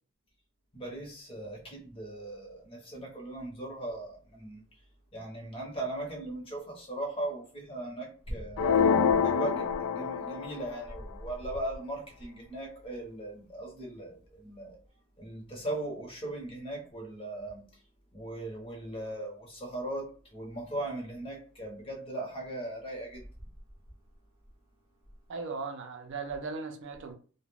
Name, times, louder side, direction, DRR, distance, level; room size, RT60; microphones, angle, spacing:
voice 1, 0.7-4.6 5.1-8.7 9.2-14.8 15.2-17.7 18.1-23.3, right 1 dB, 25° left, 0.8 m, -38 dB
sound 1, 8.6-10.6, left 6 dB, 80° left, 0.3 m, -26 dB
voice 2, 25.3-27.1, right 4 dB, 55° right, 0.5 m, -37 dB
2.3 x 2.1 x 3.2 m
head